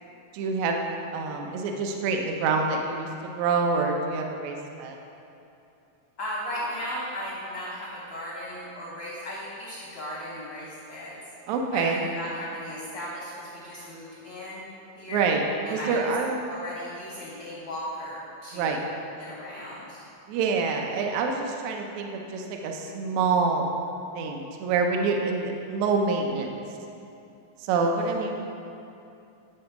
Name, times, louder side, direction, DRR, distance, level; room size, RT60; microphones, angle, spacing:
voice 1, 0.3-0.8 1.1-5.0 11.5-12.1 15.1-15.4 15.7-16.5 18.5-18.8 20.3-23.7 24.1-26.5 27.6-28.3, right 4 dB, 80° right, 2 dB, 1.6 m, -26 dB
voice 2, 6.2-11.1 11.7-14.6 15.0-15.3 15.6-18.8 19.2-20.0 27.8-28.2, equal, 70° left, -7 dB, 1.1 m, -36 dB
9.6 x 3.8 x 5.8 m, 2.7 s
omnidirectional pair, 4.1 m